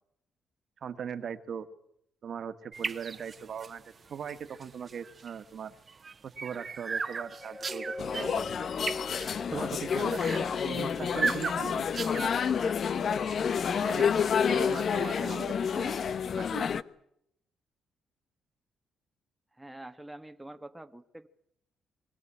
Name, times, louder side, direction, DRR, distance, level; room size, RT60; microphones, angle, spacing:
voice 1, 0.8-1.7 2.2-3.8 4.1-5.7 6.2-8.4 9.5-12.0 13.8-14.1 14.4-15.5 16.4-16.7, right 7 dB, 55° right, 10 dB, 1.6 m, -39 dB
sound 1, 2.7-15.2, right 4 dB, 35° right, 1.2 m, -39 dB
sound 2, 6.7-13.4 14.0-14.2, left 3 dB, 25° left, 2.3 m, -43 dB
sound 3, 8.0-16.8, left 7 dB, 55° left, 0.9 m, -29 dB
voice 2, 14.9-15.4 15.7-16.1 19.6-21.3, right 1 dB, 10° right, 8 dB, 1.1 m, -45 dB
22.5 x 17.0 x 9.8 m, 0.76 s
cardioid pair, 90°, 0 cm